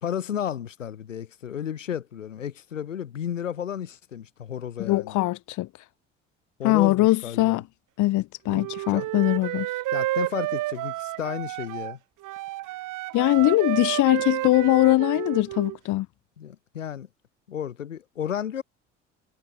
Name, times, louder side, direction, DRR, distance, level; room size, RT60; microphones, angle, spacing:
voice 1, 0.0-5.2 6.6-7.6 8.9-9.1 9.9-12.0 16.4-17.1 17.5-18.6, left 9 dB, 85° left, 1.6 m, -33 dB
voice 2, 4.8-5.7 6.6-7.6 8.0-9.7 13.1-16.1, left 18 dB, 50° left, 1.1 m, -21 dB
Wind instrument woodwind instrument, 8.5-12.0 12.2-15.8, right 17 dB, 55° right, 2.1 m, -31 dB
figure-of-eight pair, 55°, 37 cm